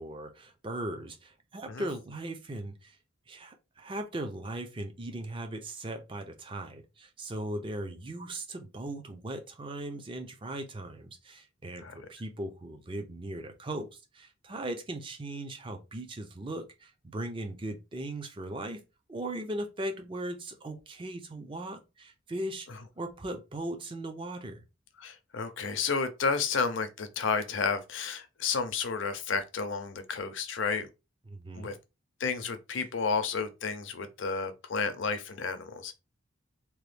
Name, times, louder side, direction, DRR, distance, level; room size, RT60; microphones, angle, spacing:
voice 1, 0.0-3.0 3.3-18.8 19.1-24.6 31.3-31.7, right 1 dB, 25° right, 0.4 m, -38 dB
voice 2, 25.0-30.9 31.6-31.7 32.2-36.0, left 5 dB, 65° left, 0.5 m, -31 dB
2.9 x 2.2 x 3.2 m
head